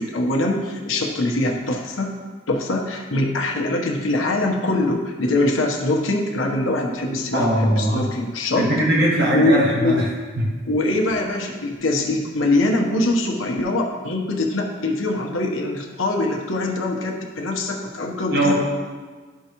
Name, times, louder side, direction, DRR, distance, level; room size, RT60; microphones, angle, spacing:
voice 1, 0.0-2.1 2.5-8.7 9.3-9.9 10.6-18.5, left 2 dB, 80° left, 1 dB, 1.1 m, -23 dB
voice 2, 7.3-8.1 8.5-10.1 10.4-10.5 18.3-18.5, right 1 dB, 50° right, -5 dB, 1.6 m, -20 dB
12.0 x 4.7 x 3.0 m, 1.5 s
head